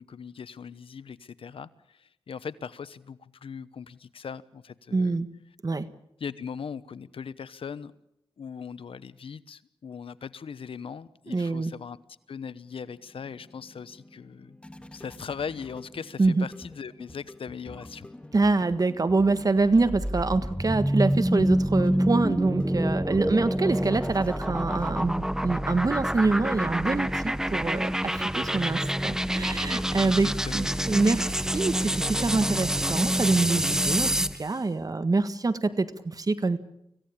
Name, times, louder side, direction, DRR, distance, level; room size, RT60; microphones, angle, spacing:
voice 1, 0.0-5.2 6.2-7.9 8.4-12.0 12.3-14.6 14.9-18.1 30.0-30.7, left 6 dB, 75° left, 16 dB, 1.0 m, -39 dB
voice 2, 4.9-5.3 5.6-5.8 11.3-11.7 16.2-16.4 18.3-34.1 34.4-36.6, right 3 dB, 40° right, 12 dB, 1.5 m, -25 dB
sound 1, 12.6-25.3, left 1 dB, 10° left, 1.7 m, -47 dB
sound 2, 19.7-34.4, equal, 5° right, 0.9 m, -27 dB
25.5 x 16.5 x 8.6 m, 0.80 s
cardioid pair, 70°, 9 cm